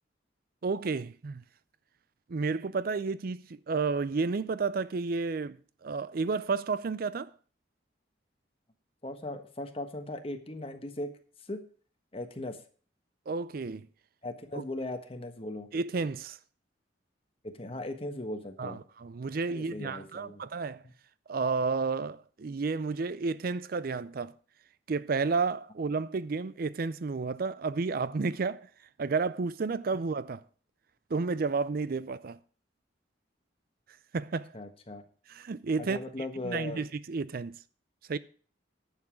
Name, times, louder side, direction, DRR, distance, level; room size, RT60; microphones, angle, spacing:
voice 1, 0.6-1.4 2.3-7.3 13.3-13.9 15.7-16.4 18.6-20.8 21.3-24.3 24.9-28.7 29.0-30.4 31.1-32.4 34.1-34.5 35.3-36.0 36.4-37.6 38.1-38.2, right 4 dB, 50° right, 0.4 m, -31 dB
voice 2, 9.0-11.1 11.5-11.6 12.1-12.6 14.2-15.7 17.6-18.8 19.5-20.4 34.5-35.0 35.8-36.8, left 1 dB, 30° left, 1.4 m, -38 dB
11.0 x 7.2 x 6.1 m
head